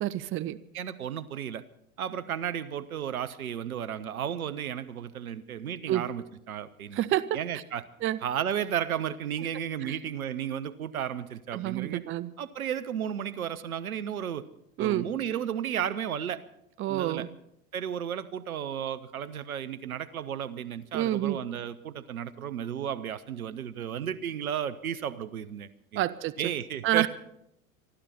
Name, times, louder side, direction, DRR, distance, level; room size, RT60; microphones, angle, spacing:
voice 1, 0.0-0.6 5.9-6.0 6.9-7.3 8.0-8.2 9.8-9.9 11.5-12.3 14.8-15.1 16.8-17.3 20.9-21.4 26.0-26.3 26.8-27.1, right 13 dB, 30° right, 14 dB, 0.7 m, -28 dB
voice 2, 0.7-1.6 2.0-7.0 7.3-7.8 8.2-12.0 12.4-14.4 14.8-16.4 16.9-17.3 17.7-26.0 26.4-27.1, right 9 dB, 80° right, 13 dB, 1.0 m, -33 dB
26.5 x 12.0 x 4.3 m, 0.77 s
figure-of-eight pair, 85°, 42 cm